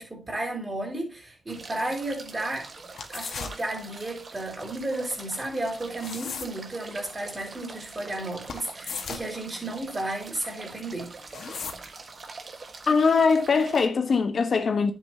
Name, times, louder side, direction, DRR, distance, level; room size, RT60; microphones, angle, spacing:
voice 1, 0.0-2.7 3.1-11.1, right 2 dB, 25° right, 3.7 m, -33 dB
sound 1, 1.5-13.8, right 4 dB, 50° right, 1.6 m, -44 dB
sound 2, 2.9-3.6 5.8-6.6 8.5-8.6 8.9-9.4 11.2-11.8, left 6 dB, 75° left, 1.6 m, -36 dB
voice 2, 12.9-14.9, left 5 dB, 60° left, 1.2 m, -22 dB
10.5 x 8.1 x 2.9 m
cardioid pair, 95°, 0 cm